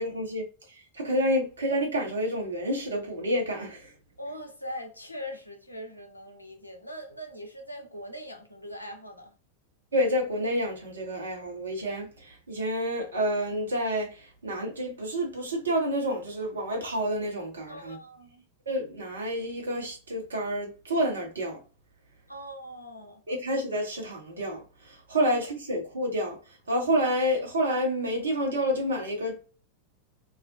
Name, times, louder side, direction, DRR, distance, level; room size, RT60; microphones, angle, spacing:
voice 1, 0.0-3.9 9.9-18.0 18.7-21.6 23.3-29.4, equal, 70° right, 0.9 m, -29 dB
voice 2, 4.2-9.3 17.7-18.4 22.3-23.2, equal, 85° left, 0.5 m, -41 dB
2.4 x 2.1 x 2.5 m
figure-of-eight pair, 90°, 0 cm